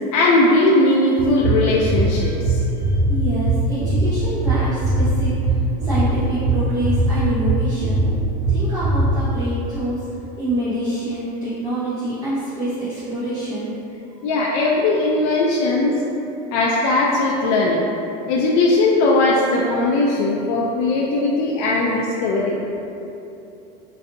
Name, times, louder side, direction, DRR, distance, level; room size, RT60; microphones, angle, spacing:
voice 1, 0.1-2.6 14.2-16.0 16.5-17.9 18.3-22.6, left 2 dB, 65° left, -4 dB, 0.4 m, -18 dB
sound 1, 1.2-9.1, right 2 dB, 45° right, 0.5 m, -20 dB
voice 2, 3.1-8.0 8.5-10.1 10.4-13.8, right 1 dB, 20° right, -15 dB, 0.8 m, -26 dB
3.9 x 2.5 x 2.6 m, 2.8 s
cardioid pair, 150°, 20 cm